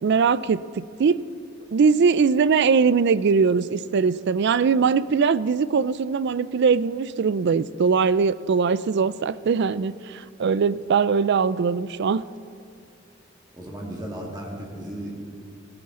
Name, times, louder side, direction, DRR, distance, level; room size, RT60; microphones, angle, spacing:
voice 1, 0.0-1.2 1.7-12.2, right 5 dB, 60° right, 17 dB, 0.4 m, -21 dB
voice 2, 13.5-15.4, right 1 dB, 20° right, -1 dB, 1.8 m, -35 dB
17.5 x 14.5 x 3.8 m, 2.3 s
head